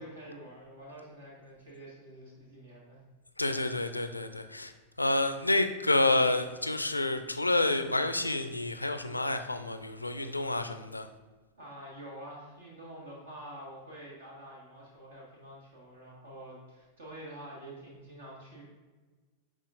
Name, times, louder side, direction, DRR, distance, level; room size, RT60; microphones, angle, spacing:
voice 1, 0.0-3.0 11.6-18.6, right 1 dB, 65° right, -4 dB, 1.5 m, -47 dB
voice 2, 3.4-4.7 5.0-11.1, left 2 dB, 85° left, 9 dB, 0.4 m, -29 dB
9.9 x 3.9 x 2.5 m, 1.3 s
figure-of-eight pair, 90°, 0 cm